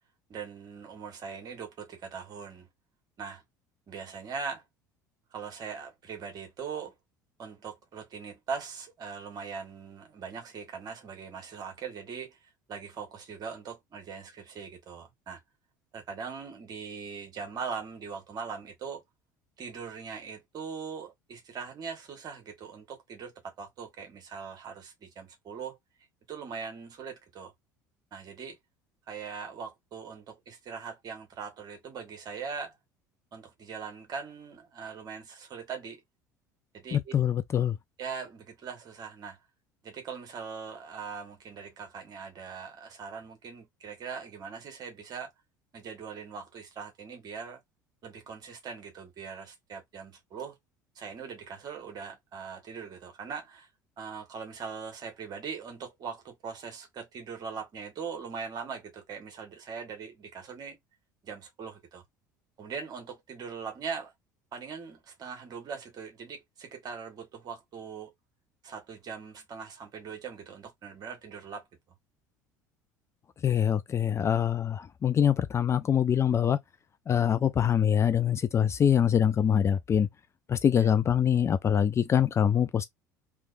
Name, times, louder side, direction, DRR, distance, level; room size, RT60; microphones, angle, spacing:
voice 1, 0.3-2.7 3.2-3.4 3.9-4.6 5.3-6.9 7.4-12.4 12.7-15.4 15.9-19.0 19.6-25.8 26.3-27.5 28.1-28.6 29.1-32.8 33.3-36.0 36.7-37.1 38.0-39.4 39.8-45.3 45.7-47.6 48.0-50.6 50.9-53.7 54.0-60.8 61.2-62.0 62.6-64.1 64.5-68.1 68.6-71.6 80.8-80.9, right 6 dB, 40° right, 1.6 m, -41 dB
voice 2, 36.9-37.7 73.4-76.6 77.1-80.1 80.5-82.9, left 8 dB, 25° left, 0.4 m, -24 dB
3.3 x 3.1 x 2.5 m
figure-of-eight pair, 65°, 10 cm